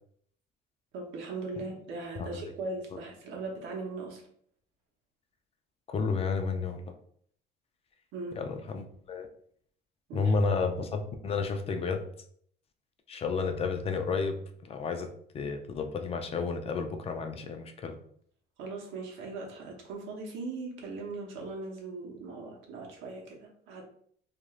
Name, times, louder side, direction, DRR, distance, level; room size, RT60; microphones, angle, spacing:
voice 1, 0.9-4.2 8.1-8.4 10.1-10.3 18.6-23.8, right 3 dB, 85° right, 0 dB, 0.8 m, -39 dB
voice 2, 5.9-6.8 8.4-9.3 10.1-12.0 13.1-14.4 14.6-15.1 15.3-18.0, left 4 dB, 30° left, 6 dB, 0.4 m, -31 dB
2.4 x 2.3 x 3.0 m, 0.62 s
cardioid pair, 120°, 19 cm